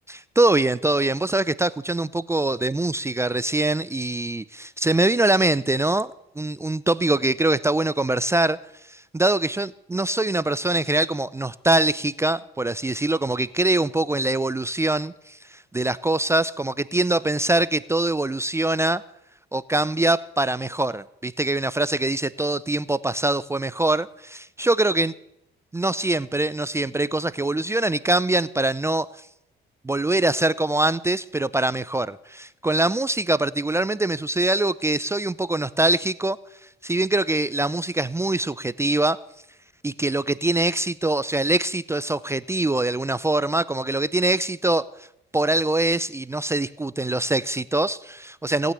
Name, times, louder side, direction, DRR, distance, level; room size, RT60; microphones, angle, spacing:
voice 1, 0.4-8.6 8.9-19.0 19.5-25.1 25.7-29.1 29.8-36.4 36.8-39.2 39.8-44.8 45.3-48.7, right 2 dB, 15° right, 16 dB, 0.5 m, -23 dB
18.0 x 9.2 x 8.3 m, 0.82 s
cardioid pair, 90°, 20 cm